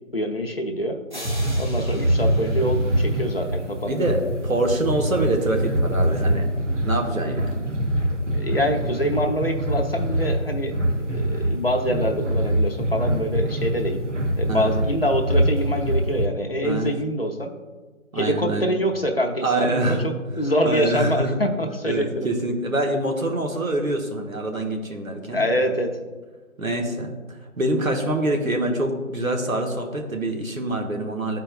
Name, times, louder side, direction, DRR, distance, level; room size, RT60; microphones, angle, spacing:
voice 1, 0.1-1.0 1.6-4.0 8.3-14.0 14.4-17.5 18.1-22.3 25.3-25.9, equal, 45° left, 3 dB, 0.6 m, -25 dB
sound 1, 1.1-4.0, equal, 35° right, 0.6 m, -41 dB
sound 2, 1.2-16.2, right 1 dB, 60° right, 0.9 m, -24 dB
voice 2, 3.9-6.5 6.8-7.7 14.5-14.8 16.6-16.9 18.1-18.8 19.4-20.0 20.6-21.4 21.8-25.5 26.6-31.4, right 1 dB, 80° right, 2 dB, 1.3 m, -25 dB
12.0 x 4.4 x 2.3 m, 1.3 s
figure-of-eight pair, 165°, 41 cm